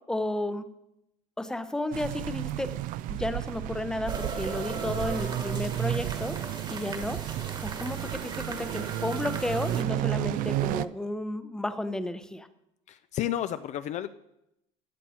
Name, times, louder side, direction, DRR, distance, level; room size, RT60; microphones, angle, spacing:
voice 1, 0.1-0.7 1.4-2.7 3.1-6.4 6.7-7.2 7.6-12.5, left 1 dB, 5° left, 11 dB, 0.7 m, -32 dB
sound 1, 1.9-10.9, right 14 dB, 55° right, 0.4 m, -32 dB
sound 2, 4.1-9.8, right 4 dB, 30° right, 1.5 m, -38 dB
voice 2, 12.9-14.1, left 11 dB, 45° left, 12 dB, 0.4 m, -31 dB
14.0 x 7.2 x 4.3 m, 0.83 s
cardioid pair, 120°, 16 cm